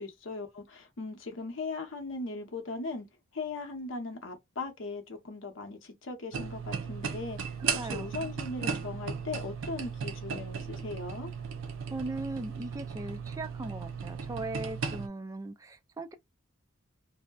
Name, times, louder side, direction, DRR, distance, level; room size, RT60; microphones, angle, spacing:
voice 1, 0.0-3.1 3.3-11.3, left 3 dB, 75° left, 0.8 m, -39 dB
sound 1, 6.3-15.1, right 6 dB, 80° right, 0.4 m, -36 dB
voice 2, 7.6-8.1 11.9-16.1, right 2 dB, 15° right, 0.3 m, -39 dB
2.6 x 2.1 x 2.3 m
head